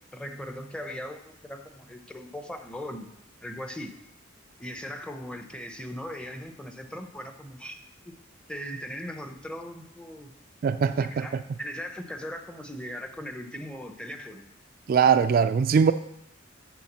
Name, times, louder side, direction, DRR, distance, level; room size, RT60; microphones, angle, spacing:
voice 1, 0.1-3.1 3.4-3.9 4.6-7.8 8.5-10.3 10.9-14.5, equal, 5° left, 0.7 m, -39 dB
voice 2, 10.6-11.3 14.9-15.9, right 6 dB, 45° right, 0.3 m, -21 dB
6.9 x 6.5 x 7.3 m
head